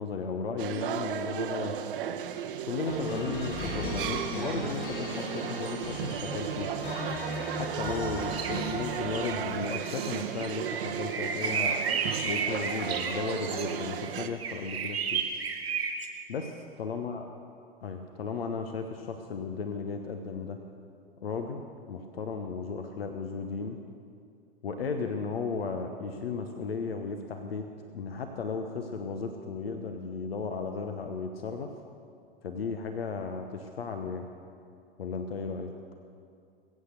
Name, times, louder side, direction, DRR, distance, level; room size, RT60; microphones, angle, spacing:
voice 1, 0.0-1.8 2.6-6.7 7.6-11.8 12.2-15.3 16.3-17.3 17.8-20.6 21.2-23.8 24.6-31.7 32.4-34.3 35.0-35.7, left 5 dB, 75° left, 5 dB, 1.1 m, -35 dB
sound 1, 0.6-14.3, right 9 dB, 60° right, 1.0 m, -35 dB
sound 2, 2.8-9.6, left 2 dB, 60° left, 2.9 m, -37 dB
sound 3, 8.3-16.1, right 6 dB, 80° right, 2.0 m, -33 dB
21.5 x 8.5 x 6.7 m, 2.4 s
figure-of-eight pair, 100°, 30 cm